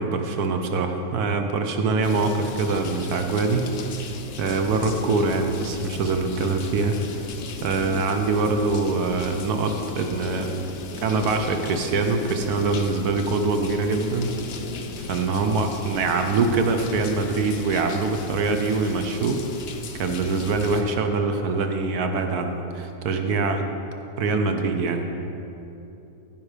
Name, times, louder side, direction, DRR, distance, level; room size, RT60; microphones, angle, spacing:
voice 1, 0.0-3.7 4.4-7.3 7.6-10.5 11.0-14.3 15.0-19.4 20.0-23.7 24.2-25.1, right 3 dB, 65° right, 5 dB, 1.2 m, -24 dB
sound 1, 2.0-20.8, left 4 dB, 80° left, 0.5 m, -37 dB
15.5 x 5.6 x 4.9 m, 2.9 s
omnidirectional pair, 1.9 m